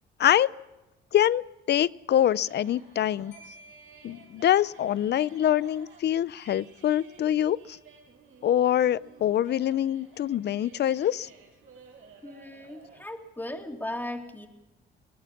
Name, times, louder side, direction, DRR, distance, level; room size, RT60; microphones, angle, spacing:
voice 1, 0.2-0.5 1.1-3.3 4.0-7.8 8.4-11.3, left 11 dB, 60° left, 20 dB, 0.6 m, -25 dB
sound 1, 2.1-13.0, right 6 dB, 80° right, 6.7 m, -54 dB
Marimba xylophone, 3.3-5.0, right 1 dB, 75° left, 7.9 m, -54 dB
voice 2, 12.2-14.5, left 1 dB, 10° left, 3 dB, 3.1 m, -37 dB
23.5 x 18.5 x 6.0 m, 1.0 s
cardioid pair, 90°, 20 cm